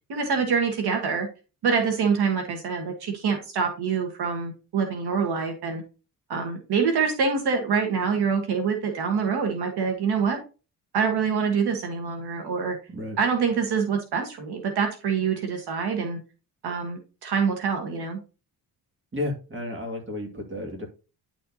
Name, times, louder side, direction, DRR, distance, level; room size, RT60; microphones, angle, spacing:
voice 1, 0.1-1.3 1.6-5.8 6.3-10.4 10.9-12.8 13.2-16.2 16.6-18.2, right 6 dB, 80° right, 4 dB, 1.6 m, -25 dB
voice 2, 19.1-20.9, left 2 dB, 30° right, 3 dB, 2.2 m, -32 dB
10.5 x 4.4 x 2.9 m, 0.33 s
cardioid pair, 115°, 38 cm